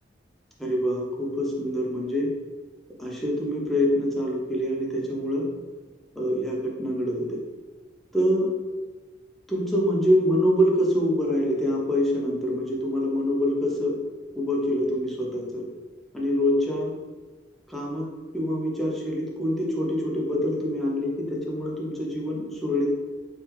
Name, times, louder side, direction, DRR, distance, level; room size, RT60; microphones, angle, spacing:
voice 1, 0.6-2.3 3.0-5.5 6.2-7.4 8.1-8.5 9.5-14.0 14.3-15.6 16.1-16.9 17.7-18.1 18.3-22.9, equal, ahead, -4 dB, 0.7 m, -25 dB
3.3 x 3.2 x 3.1 m, 1.3 s
head